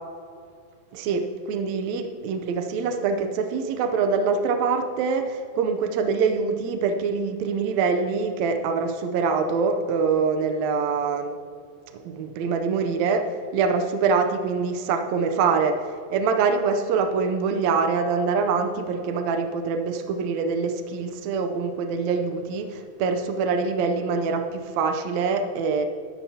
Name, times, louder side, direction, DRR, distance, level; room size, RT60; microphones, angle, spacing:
voice 1, 0.9-11.4 12.0-25.8, right 5 dB, 85° right, 6 dB, 1.5 m, -24 dB
20.5 x 10.0 x 2.8 m, 2.4 s
omnidirectional pair, 4.1 m